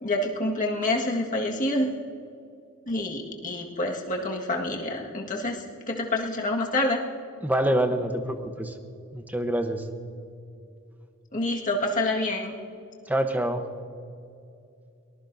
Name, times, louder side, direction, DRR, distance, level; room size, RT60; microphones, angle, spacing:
voice 1, 0.0-2.0 2.9-7.0 11.3-12.5, left 1 dB, 40° left, 0 dB, 1.7 m, -27 dB
voice 2, 7.4-8.8 9.1-9.9 13.1-13.7, right 1 dB, 10° right, 7 dB, 0.9 m, -26 dB
23.0 x 19.0 x 2.7 m, 2.5 s
head